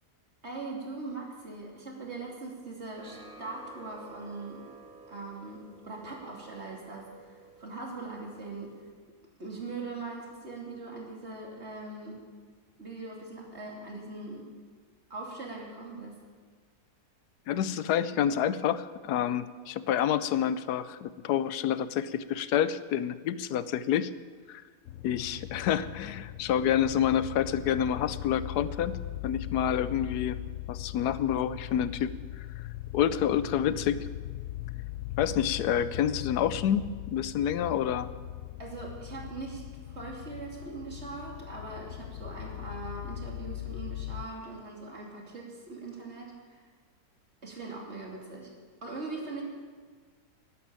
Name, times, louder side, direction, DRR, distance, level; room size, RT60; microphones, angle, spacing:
voice 1, 0.4-4.7 5.1-8.9 9.4-12.2 12.8-14.5 15.1-16.2 38.6-46.6 47.4-48.5 48.8-49.4, right 3 dB, 45° right, -1 dB, 3.1 m, -41 dB
sound 1, 3.0-8.9, right 3 dB, 30° right, 4.3 m, -52 dB
voice 2, 17.5-24.1 24.5-24.6 25.0-30.4 30.7-32.1 32.4-32.6 32.9-34.1 35.2-38.1, left 9 dB, 85° left, 15 dB, 1.2 m, -28 dB
sound 2, 24.9-44.3, left 14 dB, 65° left, 0.9 m, -40 dB
12.0 x 11.5 x 8.7 m, 1.5 s
omnidirectional pair, 1.7 m